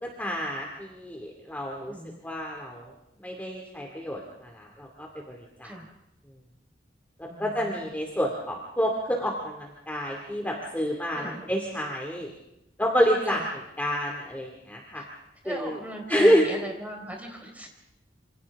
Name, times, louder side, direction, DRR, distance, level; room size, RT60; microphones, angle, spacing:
voice 1, 0.0-1.9 2.2-2.9 3.2-5.7 7.2-12.3 12.8-13.4 13.8-15.0 15.5-15.8 16.1-16.4, equal, 10° left, -1 dB, 2.4 m, -28 dB
voice 2, 1.8-2.2 5.6-5.9 7.3-7.9 11.1-11.4 13.3-13.4 14.9-15.1 15.4-17.7, equal, 10° right, 1 dB, 4.3 m, -38 dB
27.5 x 27.0 x 3.6 m, 0.86 s
head